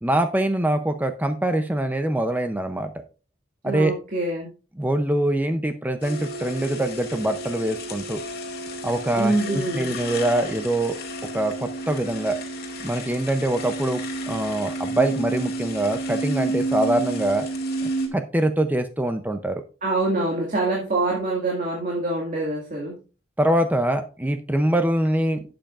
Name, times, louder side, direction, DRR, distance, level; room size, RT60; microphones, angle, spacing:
voice 1, 0.0-2.9 3.6-3.9 4.8-8.2 8.8-11.0 11.3-12.4 12.8-14.0 14.3-17.5 18.1-19.6 23.4-25.4, right 1 dB, 10° right, 7 dB, 0.5 m, -24 dB
voice 2, 3.6-4.5 9.2-10.0 19.8-22.9, right 2 dB, 40° right, -2 dB, 2.0 m, -25 dB
sound 1, 6.0-18.1, right 1 dB, 50° left, 2.1 m, -31 dB
11.5 x 7.8 x 2.5 m, 0.33 s
head